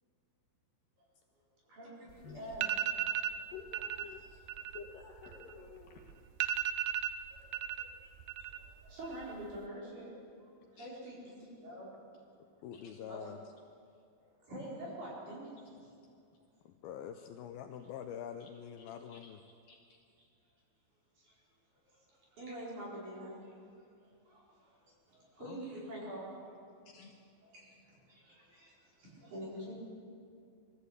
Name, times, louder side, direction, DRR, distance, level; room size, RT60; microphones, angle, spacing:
voice 1, 1.7-2.8 4.3-4.4 5.5-5.7 7.3-7.9 8.4-10.1 10.4-11.9 13.0-13.3 14.4-15.5 15.8-15.9 21.2-21.3 21.9-22.0 22.3-23.8 24.3-26.4 27.4-29.7, right 1 dB, 45° right, -5 dB, 6.0 m, -46 dB
sound 1, 2.1-2.2 2.5-3.4 3.7-4.1 4.4-5.8 6.1-6.2 6.4-7.8 8.1-8.7 9.0-9.6, right 10 dB, 80° right, 2.7 m, -35 dB
voice 2, 3.5-6.1 7.0-7.1 8.1-8.2 10.8-10.9 12.7-12.9 18.4-18.5 18.8-19.3 19.7-20.0 26.9-27.1, left 6 dB, 65° left, 0 dB, 2.8 m, -52 dB
voice 3, 12.6-13.4 16.7-19.4 25.4-25.6, left 9 dB, 90° left, 6 dB, 2.1 m, -45 dB
22.0 x 14.5 x 8.3 m, 2.4 s
omnidirectional pair, 5.2 m